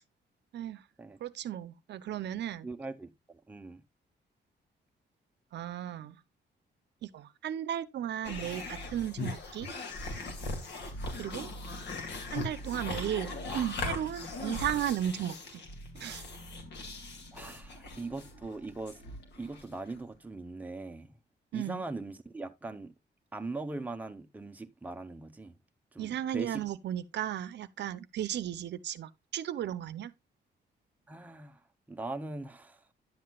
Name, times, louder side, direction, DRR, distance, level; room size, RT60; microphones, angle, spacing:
voice 1, 1.2-2.7 5.5-6.2 7.0-9.7 11.2-11.5 12.3-15.6 15.9-16.2 21.5-21.8 26.0-30.1, right 11 dB, 75° right, 0.6 m, -35 dB
voice 2, 2.6-3.8 17.3-19.0 19.4-21.1 21.5-22.9 23.3-25.5 25.9-26.7 31.1-31.6 31.9-32.8, right 3 dB, 10° right, 0.7 m, -40 dB
sound 1, 8.2-20.0, left 2 dB, 75° left, 2.1 m, -39 dB
10.0 x 7.7 x 2.2 m
wide cardioid pair, 150°, 18 cm